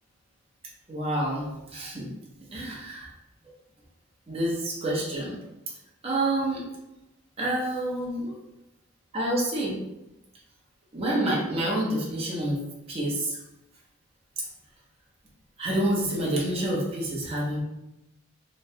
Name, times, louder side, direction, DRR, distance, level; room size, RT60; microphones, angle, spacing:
voice 1, 0.9-2.1 2.5-3.1 4.3-5.4 6.0-6.6 7.4-8.4 9.1-9.8 10.9-12.6 12.9-13.4 15.6-17.6, right 1 dB, 30° right, -4 dB, 0.7 m, -28 dB
3.0 x 2.1 x 2.7 m, 0.92 s
head